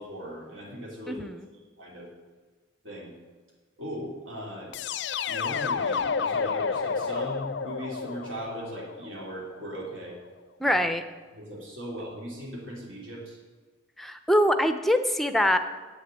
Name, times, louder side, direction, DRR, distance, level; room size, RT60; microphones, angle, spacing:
voice 1, 0.0-1.2 1.8-2.1 2.8-3.1 3.8-4.7 5.3-10.2 10.6-10.7 11.3-13.4, equal, 75° right, -3 dB, 2.9 m, -38 dB
voice 2, 1.1-1.4 10.6-11.0 14.0-15.6, equal, ahead, 8 dB, 0.6 m, -23 dB
sound 1, 4.7-9.6, left 5 dB, 60° left, 0.5 m, -30 dB
8.4 x 6.5 x 8.3 m, 1.4 s
head